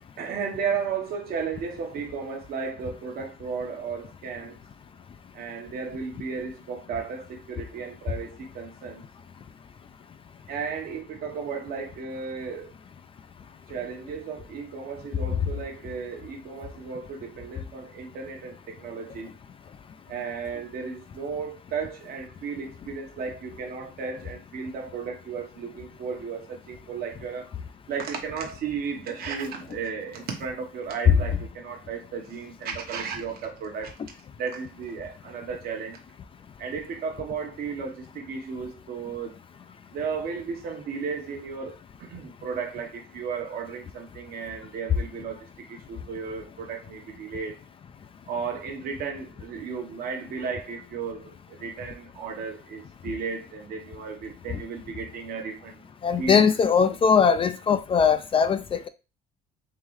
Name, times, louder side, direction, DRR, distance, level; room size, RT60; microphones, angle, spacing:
voice 1, 0.2-4.6 5.3-9.0 10.5-12.7 13.7-19.3 20.1-27.5 27.9-33.9 34.4-36.0 36.6-39.3 39.9-47.6 48.3-55.8 56.2-56.4, right 5 dB, 65° right, 1.0 m, -34 dB
voice 2, 56.0-58.9, left 6 dB, 35° left, 0.3 m, -20 dB
3.8 x 3.0 x 3.1 m
cardioid pair, 110°, 17 cm